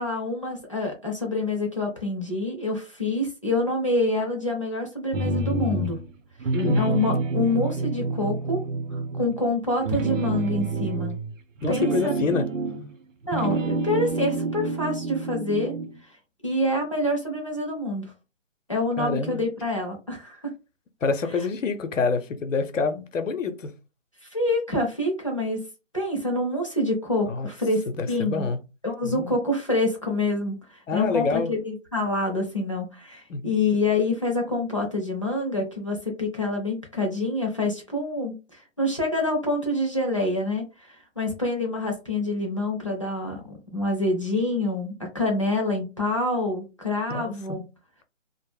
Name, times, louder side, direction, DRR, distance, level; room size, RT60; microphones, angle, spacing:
voice 1, 0.0-6.0 6.7-8.6 9.1-11.2 11.7-12.1 13.3-15.8 16.0-16.1 16.4-18.1 18.7-20.5 24.2-25.6 25.9-28.5 28.8-47.6, left 2 dB, 25° left, 0.4 m, -26 dB
sound 1, 5.1-6.1 6.4-9.4 9.8-13.0 13.2-16.0, right 3 dB, 85° right, 0.7 m, -28 dB
voice 2, 6.5-6.9 11.6-12.4 19.0-19.4 21.0-23.7 27.3-27.5 27.9-28.6 29.0-29.4 30.9-31.5 33.3-33.5 47.1-47.3, left 4 dB, 85° left, 0.6 m, -27 dB
2.0 x 2.0 x 3.1 m
figure-of-eight pair, 160°, 37 cm